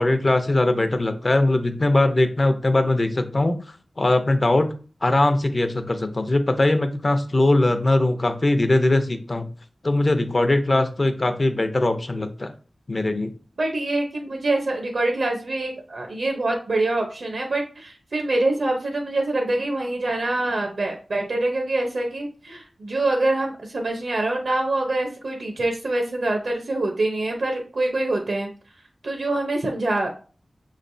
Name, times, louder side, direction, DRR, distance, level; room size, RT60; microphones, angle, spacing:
voice 1, 0.0-3.6 4.0-4.7 5.0-9.5 9.8-12.5 12.9-13.3, left 2 dB, 45° left, 8 dB, 0.6 m, -20 dB
voice 2, 13.6-28.5 29.0-30.1, right 2 dB, 80° right, 2 dB, 0.8 m, -25 dB
6.1 x 3.2 x 2.6 m, 0.39 s
wide cardioid pair, 65°, 0 cm